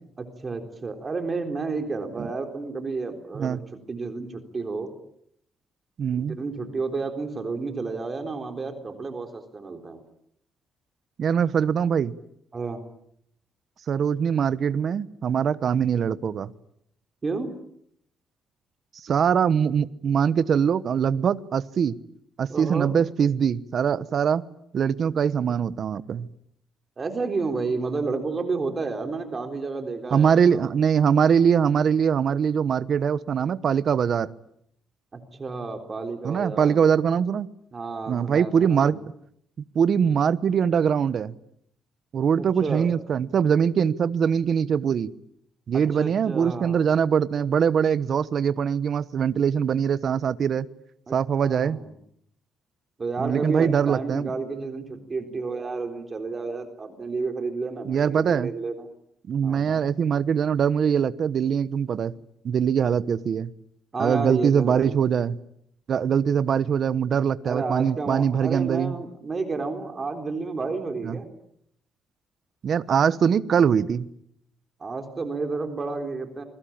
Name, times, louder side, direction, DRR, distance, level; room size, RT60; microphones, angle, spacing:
voice 1, 0.4-4.9 6.1-10.0 12.5-12.8 17.2-17.5 22.5-22.9 27.0-30.7 35.1-36.9 37.7-39.0 42.4-42.9 45.9-46.8 51.1-51.9 53.0-58.9 59.4-59.8 63.9-65.0 67.4-71.3 74.8-76.4, right 4 dB, 30° right, 6 dB, 3.8 m, -31 dB
voice 2, 6.0-6.4 11.2-12.1 13.9-16.5 19.0-22.0 22.4-24.4 24.7-26.3 30.1-34.3 36.2-37.5 38.1-39.0 39.7-41.3 42.1-45.1 45.7-50.7 51.1-51.8 53.2-54.3 57.9-58.5 59.3-62.1 62.4-63.5 64.0-65.4 65.9-68.9 71.0-71.2 72.6-74.1, right 7 dB, 50° right, 15 dB, 1.1 m, -22 dB
29.0 x 23.0 x 8.8 m, 0.72 s
cardioid pair, 125°, 0 cm